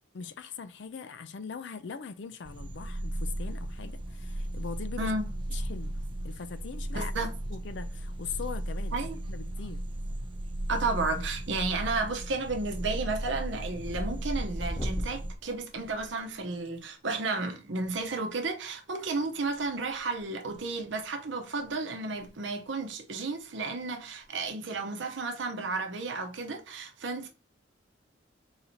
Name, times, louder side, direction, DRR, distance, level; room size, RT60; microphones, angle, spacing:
voice 1, 0.1-5.1 5.5-6.0 6.2-7.1 7.5-9.0 9.3-9.8, left 6 dB, 65° left, 0.4 m, -41 dB
sound 1, 2.4-15.4, right 1 dB, 25° right, 0.4 m, -36 dB
voice 2, 5.0-5.3 6.9-7.3 8.9-9.2 10.7-27.3, right 3 dB, 70° right, 0.8 m, -32 dB
sound 2, 9.9-10.5 10.8-11.3 11.7-12.0 12.3-16.7 18.1-18.2 19.4-20.2 20.5-20.7 21.3-21.4 21.6-21.7 22.1-22.3 22.6-22.7 24.2-24.5, equal, 25° left, 0.7 m, -41 dB
4.0 x 2.7 x 4.3 m
head